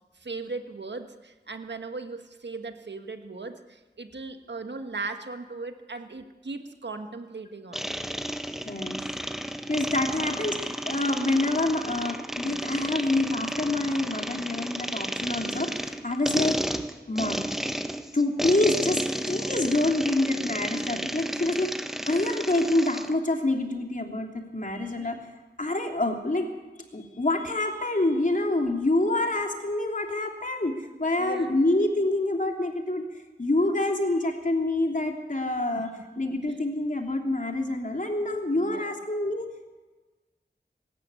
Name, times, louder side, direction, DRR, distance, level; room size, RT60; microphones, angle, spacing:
voice 1, 0.1-7.9 22.0-22.3 24.9-25.1 31.2-31.5 38.5-38.9, right 3 dB, 90° right, 7 dB, 1.6 m, -38 dB
sound 1, 7.7-23.1, equal, ahead, 1.4 m, -32 dB
voice 2, 8.6-9.0 9.7-16.6 17.1-17.5 18.1-21.7 22.1-25.2 25.6-26.5 26.9-33.1 33.4-39.7, left 2 dB, 50° left, 2 dB, 3.2 m, -27 dB
24.5 x 13.0 x 8.4 m, 1.2 s
wide cardioid pair, 55°, 18 cm